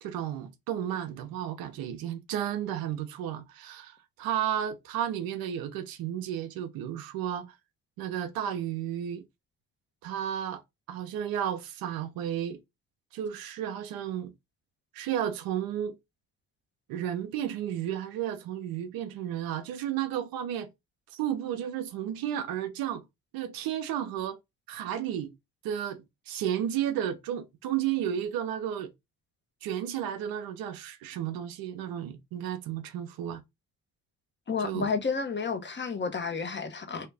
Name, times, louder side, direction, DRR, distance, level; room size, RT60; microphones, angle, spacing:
voice 1, 0.0-7.5 8.0-9.2 10.0-10.6 10.9-12.6 13.1-14.3 14.9-16.0 16.9-20.7 21.1-23.0 23.3-24.4 24.7-25.4 25.6-28.9 29.6-33.4 34.6-34.9, right 10 dB, 85° right, 0.7 m, -33 dB
voice 2, 34.5-37.1, left 5 dB, 30° left, 1.0 m, -31 dB
3.1 x 2.8 x 3.4 m
supercardioid pair, 60°, 35 cm